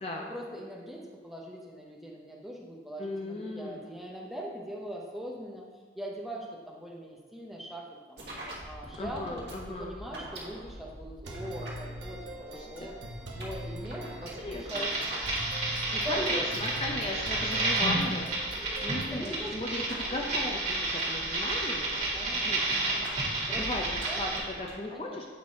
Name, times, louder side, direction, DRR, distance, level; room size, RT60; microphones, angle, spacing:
voice 1, 0.2-5.6 5.9-8.3 8.6-9.5 9.8-12.9 13.3-15.2 16.0-16.5 17.7-17.8 18.5-19.5 20.0-20.3 22.1-23.6 24.1-24.2 24.9-25.2, equal, ahead, -3 dB, 0.9 m, -41 dB
voice 2, 3.0-3.8 9.0-9.9 12.5-12.9 14.4-14.9 15.9-22.8 23.6-25.3, left 2 dB, 30° left, 0 dB, 0.6 m, -37 dB
sound 1, 8.2-24.7, right 1 dB, 65° right, 2.0 m, -44 dB
sound 2, 11.2-19.2, right 1 dB, 90° right, 1.2 m, -42 dB
sound 3, 14.7-24.4, right 2 dB, 45° right, 2.3 m, -30 dB
8.6 x 4.0 x 4.6 m, 1.5 s
head